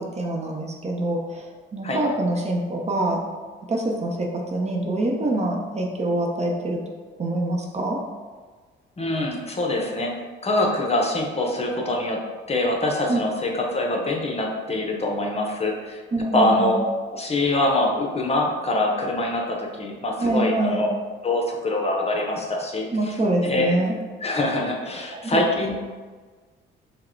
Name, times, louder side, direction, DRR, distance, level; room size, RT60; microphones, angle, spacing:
voice 1, 0.0-3.2 3.7-6.8 7.2-8.0 13.1-13.2 16.1-16.7 20.2-20.8 22.9-24.0 25.1-25.4, right 2 dB, 35° right, 0 dB, 0.7 m, -25 dB
voice 2, 9.0-10.1 10.4-12.2 12.5-16.0 16.3-16.8 17.1-20.9 21.2-23.8 24.2-25.8, left 2 dB, 30° left, 0 dB, 0.7 m, -24 dB
4.6 x 2.2 x 4.4 m, 1.4 s
cardioid pair, 90°, 20 cm